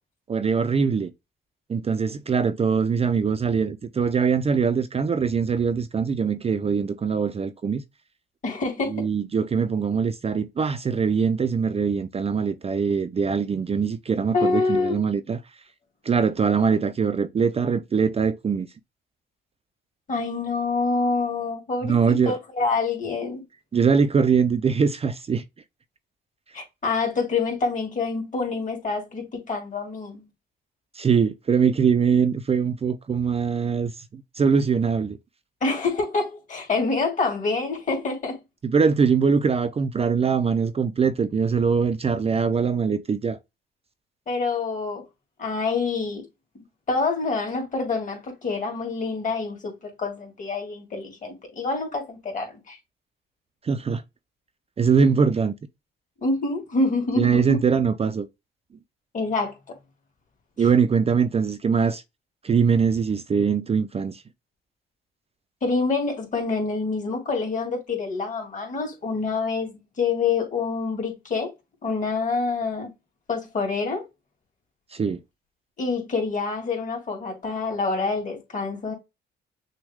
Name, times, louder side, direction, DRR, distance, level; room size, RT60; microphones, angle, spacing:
voice 1, 0.3-1.1 1.7-7.8 8.9-15.4 16.0-18.7 21.8-22.3 23.7-25.4 30.9-35.2 38.6-43.4 53.6-54.0 54.8-55.5 57.2-58.3 60.6-62.0 62.4-64.2 74.9-75.2, right 6 dB, 30° right, 0.5 m, -22 dB
voice 2, 8.4-9.1 14.3-15.0 20.1-23.4 26.5-30.2 35.6-38.4 44.3-45.0 45.4-46.2 46.5-52.8 56.2-57.6 59.1-59.8 65.6-71.5 71.8-72.9 73.3-74.1 75.8-78.9, left 4 dB, 40° left, 2.7 m, -26 dB
6.2 x 2.2 x 3.5 m
cardioid pair, 90°, 20 cm